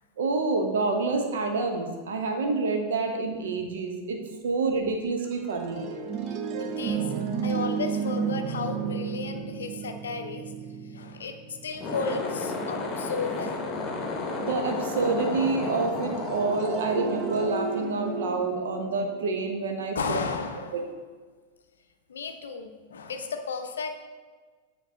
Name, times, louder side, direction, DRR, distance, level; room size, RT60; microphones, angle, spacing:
voice 1, 0.2-5.9 14.4-20.2 20.7-20.8, right 3 dB, 60° right, 3 dB, 0.8 m, -28 dB
sound 1, 5.2-12.9 16.0-20.1, right 6 dB, 35° right, 0.5 m, -33 dB
voice 2, 6.6-7.1 7.4-10.5 10.9-13.6 19.9-20.9 22.1-24.0, left 5 dB, 65° left, 6 dB, 0.5 m, -34 dB
sound 2, 11.7-18.2, left 3 dB, 30° left, 0.9 m, -33 dB
9.0 x 3.8 x 2.8 m, 1.5 s
figure-of-eight pair, 90°, 0 cm